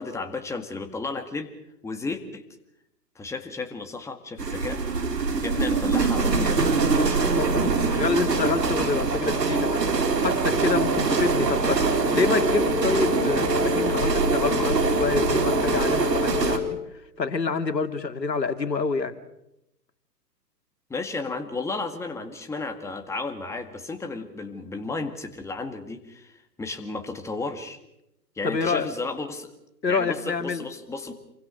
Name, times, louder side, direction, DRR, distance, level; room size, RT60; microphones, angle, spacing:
voice 1, 0.0-1.5 1.8-2.4 3.2-4.8 5.4-6.7 20.9-27.8 28.4-29.5 29.9-31.1, left 3 dB, 5° left, 6 dB, 1.8 m, -33 dB
sound 1, 4.4-16.6, right 4 dB, 75° right, 4.1 m, -23 dB
voice 2, 7.0-9.8 10.2-16.8 17.2-19.1 28.4-28.9 29.8-30.6, left 4 dB, 80° left, 7 dB, 2.6 m, -27 dB
sound 2, 11.9-16.9, left 9 dB, 45° left, 2.4 m, -30 dB
27.5 x 24.0 x 6.5 m, 0.85 s
figure-of-eight pair, 130°, 50 cm